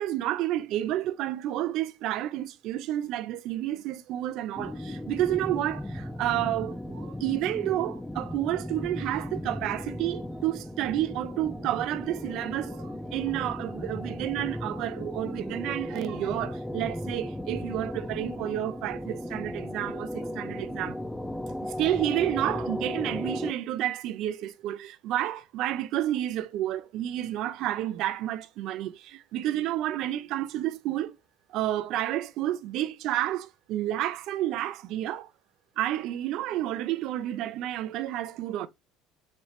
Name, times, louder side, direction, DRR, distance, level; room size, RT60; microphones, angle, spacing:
voice 1, 0.0-21.0 21.8-31.1 31.5-35.3 35.8-38.7, right 13 dB, 65° right, 0.5 m, -30 dB
sound 1, 4.6-23.5, left 1 dB, 5° left, 0.3 m, -36 dB
4.3 x 3.1 x 2.3 m
supercardioid pair, 105°, 0 cm